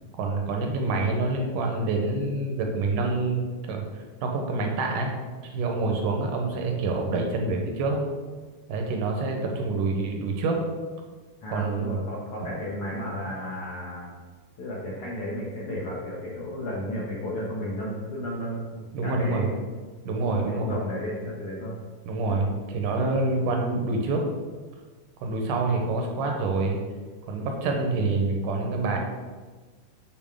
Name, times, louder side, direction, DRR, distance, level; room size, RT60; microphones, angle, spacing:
voice 1, 0.2-3.8 4.2-5.1 5.5-8.0 8.7-10.6 11.5-12.0 18.9-19.5 20.1-20.8 22.1-24.2 25.2-26.8 27.3-29.0, right 3 dB, 80° right, 2 dB, 2.3 m, -26 dB
voice 2, 11.4-14.1 14.6-19.6 20.5-21.8, left 1 dB, 70° left, -5 dB, 1.3 m, -33 dB
7.2 x 5.0 x 3.6 m, 1.4 s
omnidirectional pair, 3.9 m